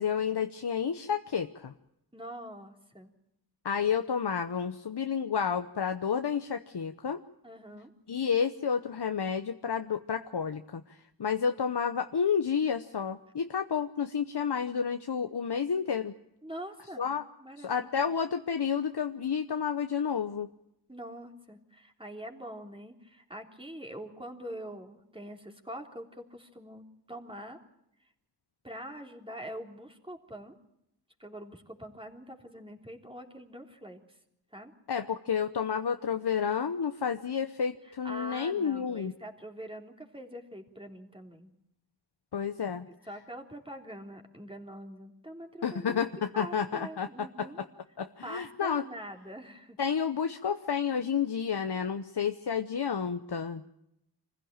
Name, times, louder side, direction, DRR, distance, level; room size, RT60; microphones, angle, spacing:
voice 1, 0.0-1.7 3.6-7.2 8.1-16.1 17.0-17.2 17.6-20.5 34.9-39.1 42.3-42.9 45.6-47.7 48.0-48.8 49.8-53.6, left 7 dB, 75° left, 7 dB, 0.9 m, -30 dB
voice 2, 2.1-3.1 7.4-7.9 16.4-17.1 17.4-18.1 20.9-27.6 28.6-30.5 31.2-34.0 34.5-34.7 37.8-41.5 42.9-46.1 46.3-47.6 48.2-49.8, equal, 15° right, 2 dB, 3.4 m, -44 dB
25.5 x 15.5 x 8.8 m, 0.82 s
wide cardioid pair, 45°, 40 cm